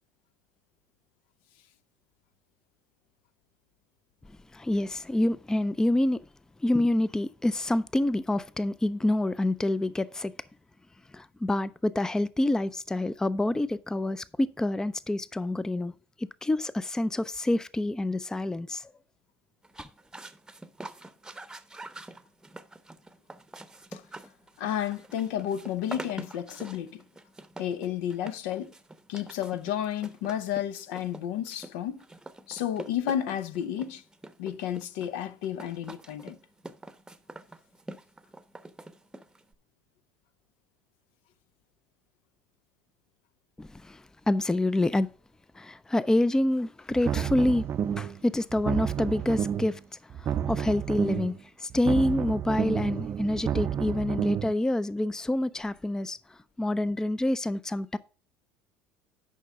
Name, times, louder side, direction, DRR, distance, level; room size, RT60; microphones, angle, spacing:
voice 1, 4.5-6.2 6.6-10.3 11.1-15.9 16.2-18.9 43.6-45.1 45.5-47.7 47.9-58.0, left 1 dB, 10° left, 0.4 m, -27 dB
sound 1, 19.6-39.5, right 2 dB, 10° right, 0.8 m, -45 dB
voice 2, 24.6-27.0 27.6-28.7 29.1-32.0 32.5-34.0 34.4-36.4, left 10 dB, 70° left, 0.6 m, -32 dB
sound 2, 46.9-48.2 48.5-49.8 50.1-51.4 51.7-54.5, right 9 dB, 40° right, 0.5 m, -30 dB
10.0 x 5.2 x 3.7 m
hypercardioid pair, 70°, 6 cm